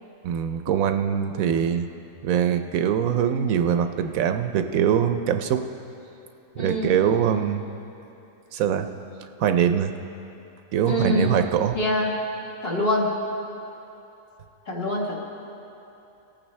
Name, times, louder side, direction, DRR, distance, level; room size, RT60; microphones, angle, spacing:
voice 1, 0.2-1.9 2.2-5.6 6.6-7.6 8.5-8.9 9.4-9.9 10.7-11.8, right 8 dB, 80° right, 8 dB, 1.0 m, -23 dB
voice 2, 6.6-7.0 10.9-11.4 11.7-12.2 12.6-13.1 14.7-15.1, left 1 dB, 45° left, -3 dB, 1.6 m, -24 dB
19.0 x 8.9 x 3.2 m, 2.9 s
omnidirectional pair, 1.5 m